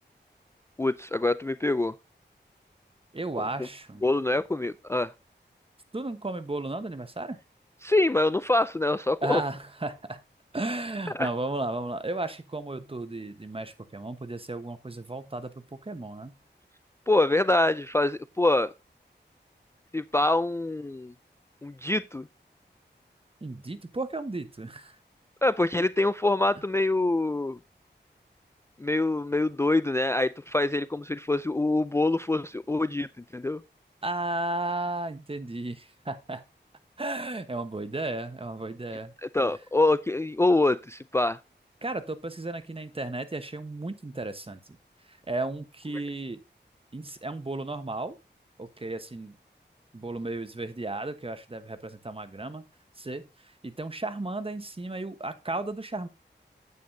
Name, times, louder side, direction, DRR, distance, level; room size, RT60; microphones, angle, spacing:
voice 1, 0.8-1.9 3.4-3.5 4.0-5.1 7.8-9.4 11.2-11.3 17.1-18.7 19.9-21.1 21.6-22.3 25.4-27.6 28.8-33.1 33.3-33.6 39.2-41.4, left 2 dB, 15° left, 0.3 m, -25 dB
voice 2, 3.1-4.0 5.9-7.4 9.2-10.2 10.5-16.3 23.4-24.9 34.0-36.4 37.0-39.1 41.8-44.6 45.1-46.4 46.9-48.2 48.6-49.4 49.9-52.7 53.0-56.1, right 2 dB, 30° right, 1.2 m, -34 dB
9.4 x 8.6 x 2.7 m
wide cardioid pair, 55°, 19 cm